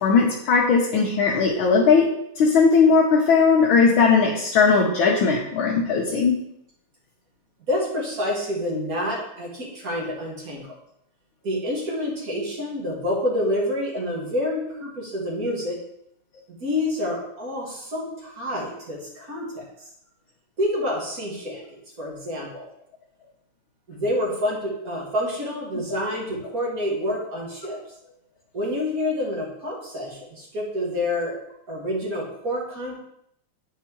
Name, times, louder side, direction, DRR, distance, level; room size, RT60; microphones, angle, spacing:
voice 1, 0.0-2.1 2.4-6.4, left 5 dB, 70° left, -2 dB, 1.6 m, -18 dB
voice 2, 7.7-10.7 11.4-15.8 16.6-19.6 20.6-21.6 22.0-22.6 23.9-27.8 28.5-31.4 31.7-33.0, left 1 dB, 45° right, -3 dB, 2.1 m, -28 dB
10.0 x 4.7 x 3.0 m, 0.75 s
omnidirectional pair, 2.4 m